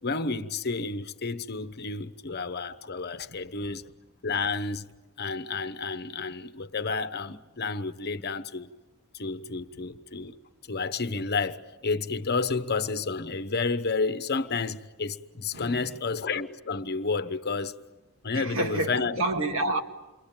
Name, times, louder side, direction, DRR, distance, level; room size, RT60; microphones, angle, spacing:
voice 1, 0.0-3.9 4.2-4.9 5.2-8.7 9.1-10.4 10.7-17.8 18.2-19.2 19.6-19.7, left 4 dB, 50° left, 1.0 m, -30 dB
voice 2, 15.5-15.9 18.3-19.8, right 2 dB, 65° right, 2.2 m, -29 dB
29.0 x 23.5 x 8.9 m
head